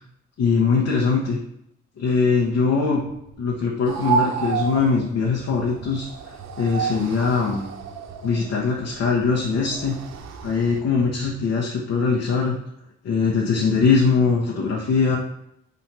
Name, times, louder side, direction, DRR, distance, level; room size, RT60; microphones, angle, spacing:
voice 1, 0.4-1.4 2.0-3.0 3.4-6.1 6.6-7.6 8.2-10.0 10.4-12.6 13.0-15.2, left 5 dB, 55° left, -2 dB, 1.2 m, -21 dB
sound 1, 2.9-11.4, right 7 dB, 25° right, 1.3 m, -45 dB
sound 2, 3.8-10.8, right 7 dB, 65° right, 0.8 m, -30 dB
5.9 x 3.0 x 5.6 m, 0.79 s
cardioid pair, 90°, 30 cm